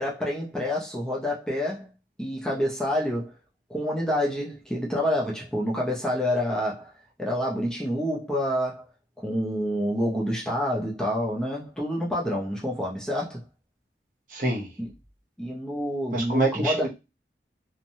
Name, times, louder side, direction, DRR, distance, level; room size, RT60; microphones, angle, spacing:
voice 1, 0.0-1.9 2.2-3.3 3.7-6.9 7.2-8.9 9.2-13.4 14.8-14.9 15.4-16.9, equal, 5° left, 0.5 m, -28 dB
voice 2, 14.3-14.7 16.1-16.9, right 2 dB, 50° right, 0.7 m, -25 dB
2.9 x 2.1 x 2.6 m
head